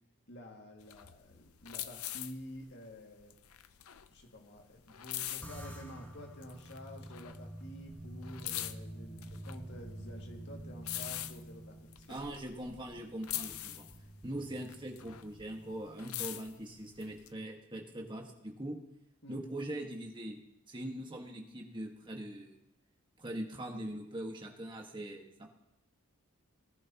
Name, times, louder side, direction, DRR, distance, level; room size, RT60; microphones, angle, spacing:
voice 1, 0.3-3.3 4.1-12.2 19.2-19.4, left 1 dB, 55° left, 1 dB, 2.2 m, -50 dB
sound 1, 0.8-6.0 6.4-7.7 8.0-12.9 13.2-15.5 15.8-17.3, left 13 dB, 90° left, 0.6 m, -43 dB
sound 2, 5.4-16.0, right 1 dB, 10° left, 1.5 m, -49 dB
voice 2, 12.1-13.9 14.2-18.8 19.3-20.4 20.7-22.6 23.2-25.5, right 1 dB, 20° right, 1 dB, 1.6 m, -42 dB
20.0 x 11.0 x 3.0 m, 0.84 s
head